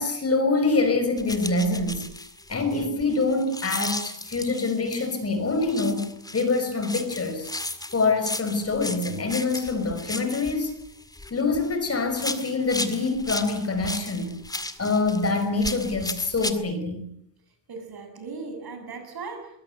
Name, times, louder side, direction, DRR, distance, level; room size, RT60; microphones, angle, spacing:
voice 1, 0.0-2.0 2.5-7.5 7.9-10.7 11.3-14.4 14.8-17.1, left 3 dB, 30° left, 7 dB, 5.4 m, -25 dB
sound 1, 1.2-5.2 5.6-11.7 12.1-16.5, left 2 dB, 10° left, 1.9 m, -35 dB
voice 2, 17.7-19.6, right 4 dB, 55° right, 6 dB, 7.5 m, -38 dB
23.0 x 21.0 x 9.3 m, 0.69 s
wide cardioid pair, 150°, 45 cm